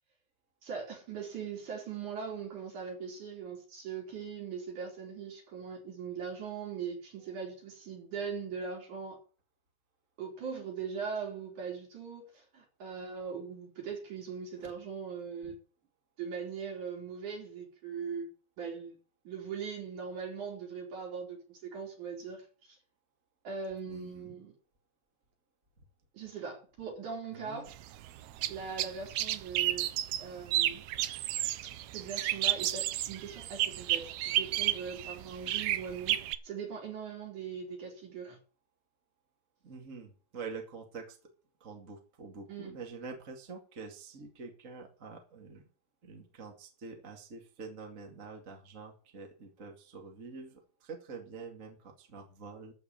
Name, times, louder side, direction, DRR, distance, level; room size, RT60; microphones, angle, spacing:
voice 1, 0.6-9.2 10.2-15.6 16.2-18.3 18.6-19.0 19.2-22.8 23.4-24.6 26.1-27.7 28.5-29.9 30.2-30.8 31.9-38.4 42.5-42.7, right 6 dB, 60° right, 4.9 m, -40 dB
voice 2, 23.9-24.4 27.3-27.7 39.6-41.2 41.6-45.6 46.0-52.7, right 4 dB, 25° right, 2.0 m, -46 dB
sound 1, 27.7-36.4, right 13 dB, 80° right, 1.7 m, -32 dB
14.0 x 4.9 x 8.9 m
omnidirectional pair, 4.0 m